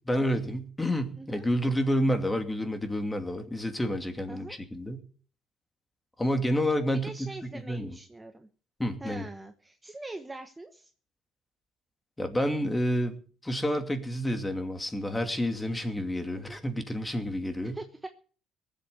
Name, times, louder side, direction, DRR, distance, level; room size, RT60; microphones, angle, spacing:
voice 1, 0.0-5.0 6.2-8.0 8.8-9.3 12.2-17.8, equal, 10° left, 6 dB, 2.5 m, -29 dB
voice 2, 1.2-1.5 4.3-4.6 7.0-8.5 9.0-10.9 16.3-16.6 17.6-18.1, right 2 dB, 15° right, 6 dB, 1.2 m, -43 dB
19.0 x 8.2 x 6.9 m, 0.43 s
cardioid pair, 110°, 0 cm